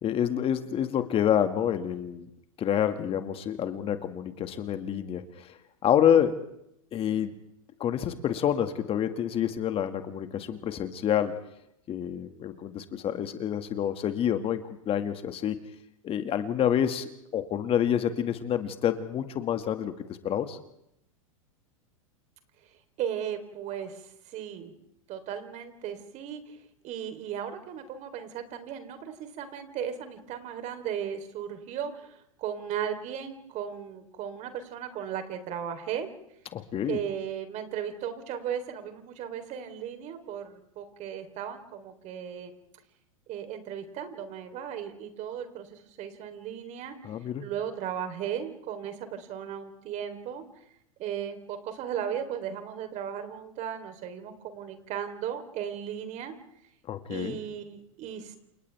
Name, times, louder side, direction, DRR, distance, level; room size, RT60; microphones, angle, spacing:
voice 1, 0.0-2.3 2.6-6.4 6.9-7.3 7.8-11.4 11.9-15.6 16.0-19.9 20.2-20.6 36.5-37.0 47.0-47.4 56.9-57.4, left 9 dB, 30° left, 8 dB, 2.0 m, -28 dB
voice 2, 23.0-24.7 25.1-36.1 36.8-42.6 43.3-47.1 47.4-50.4 51.0-56.3 57.1-58.4, right 9 dB, 40° right, 7 dB, 3.8 m, -36 dB
29.5 x 28.0 x 3.5 m, 0.78 s
hypercardioid pair, 100°, 18 cm